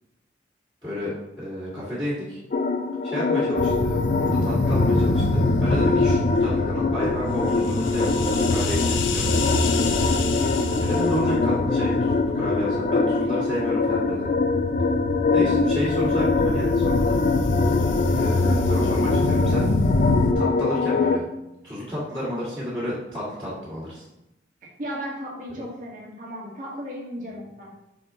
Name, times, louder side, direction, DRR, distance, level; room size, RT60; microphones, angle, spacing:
voice 1, 0.8-2.4 3.0-9.6 10.8-14.3 15.3-17.2 18.1-19.7 20.3-21.2 21.6-24.0, left 1 dB, 20° right, -11 dB, 2.4 m, -31 dB
sound 1, 2.5-21.2, left 3 dB, 40° left, 0.4 m, -24 dB
sound 2, 3.6-20.3, left 2 dB, 90° left, 0.6 m, -25 dB
voice 2, 15.3-15.6 24.6-27.8, equal, 45° right, -5 dB, 1.8 m, -35 dB
6.9 x 4.3 x 3.8 m, 0.89 s
head